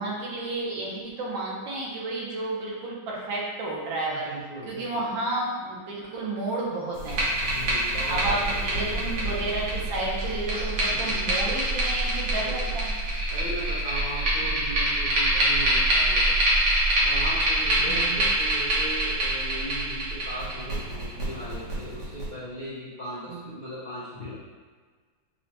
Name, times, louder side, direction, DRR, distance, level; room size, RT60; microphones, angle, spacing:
voice 1, 0.0-4.3 4.7-7.2 8.1-12.9 14.4-14.6 17.8-18.2 23.3-23.4, right 2 dB, 90° right, -4 dB, 1.6 m, -31 dB
voice 2, 4.1-5.1 7.4-8.6 10.9-11.5 12.2-12.8 13.3-16.4 17.0-24.3, equal, 85° left, -10 dB, 0.4 m, -38 dB
sound 1, 6.9-22.2, right 1 dB, 65° right, 1.6 m, -25 dB
5.3 x 2.2 x 2.9 m, 1.5 s
omnidirectional pair, 2.0 m